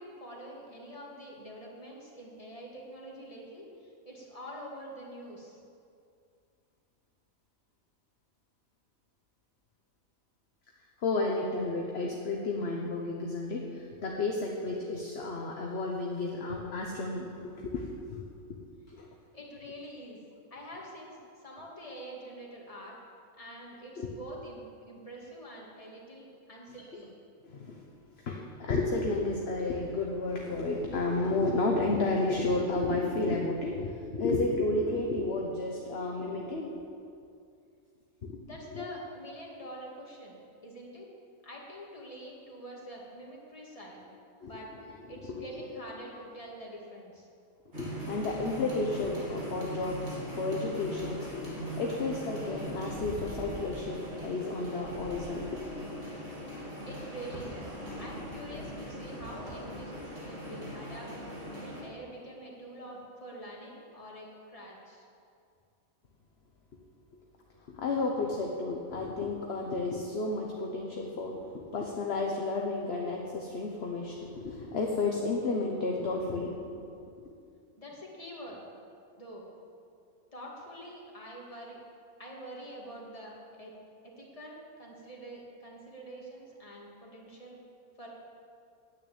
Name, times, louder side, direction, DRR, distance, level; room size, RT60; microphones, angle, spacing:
voice 1, 0.0-5.6 19.3-20.2 20.5-23.0 23.4-27.2 38.4-41.1 41.4-44.1 44.4-44.7 45.1-47.3 56.8-61.1 61.6-65.1 77.8-78.7 79.2-79.5 80.3-81.8 82.2-83.7 84.0-87.6 88.0-88.1, right 1 dB, 25° left, -3 dB, 2.3 m, -46 dB
voice 2, 11.0-18.2 18.5-18.6 18.9-19.1 24.0-24.2 27.4-27.8 28.2-36.8 38.2-38.9 44.4-44.5 44.9-45.0 45.3-45.8 47.7-56.0 67.7-77.3, left 3 dB, 50° left, 0 dB, 1.2 m, -32 dB
sound 1, 47.7-61.8, equal, 50° right, 3.4 m, -40 dB
9.7 x 8.9 x 8.7 m, 2.4 s
omnidirectional pair, 1.5 m